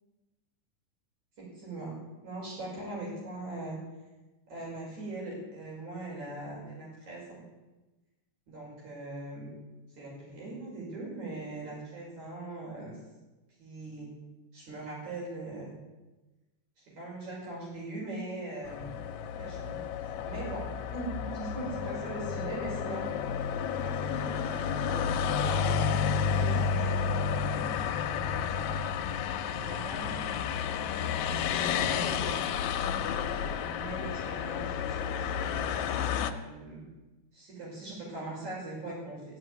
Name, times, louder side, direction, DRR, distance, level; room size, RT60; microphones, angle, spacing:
voice 1, 1.4-3.8 4.5-7.4 8.5-9.5 9.9-13.0 13.6-14.1 14.5-15.8 16.8-18.9 19.4-23.1 23.7-28.8 29.4-30.2 30.5-30.7 31.3-32.5 33.2-35.7 36.2-36.8 37.3-39.4, right 2 dB, 70° right, -5 dB, 7.4 m, -41 dB
sound 1, 18.6-36.3, left 7 dB, 75° left, 2.1 m, -31 dB
15.0 x 8.0 x 9.5 m, 1.1 s
omnidirectional pair, 3.5 m